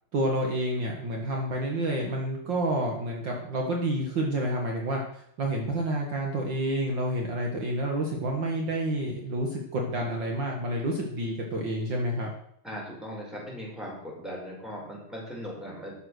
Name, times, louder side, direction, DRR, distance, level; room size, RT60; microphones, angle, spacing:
voice 1, 0.1-12.3, right 1 dB, 65° right, 0 dB, 1.1 m, -29 dB
voice 2, 9.7-10.1 12.6-15.9, equal, ahead, -4 dB, 4.6 m, -39 dB
13.0 x 6.8 x 6.3 m, 0.72 s
omnidirectional pair, 4.4 m